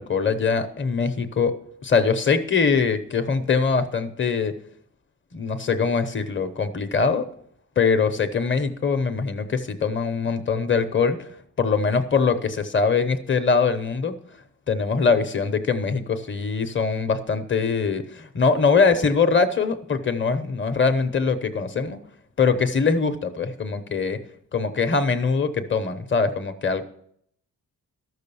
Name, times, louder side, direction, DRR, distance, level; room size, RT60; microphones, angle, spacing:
voice 1, 0.0-1.5 1.8-4.5 5.3-7.3 7.8-11.3 11.6-14.2 14.7-22.0 22.4-24.2 24.5-26.8, left 5 dB, 35° left, 10 dB, 0.9 m, -22 dB
13.0 x 6.5 x 6.9 m, 0.67 s
wide cardioid pair, 175°, 35 cm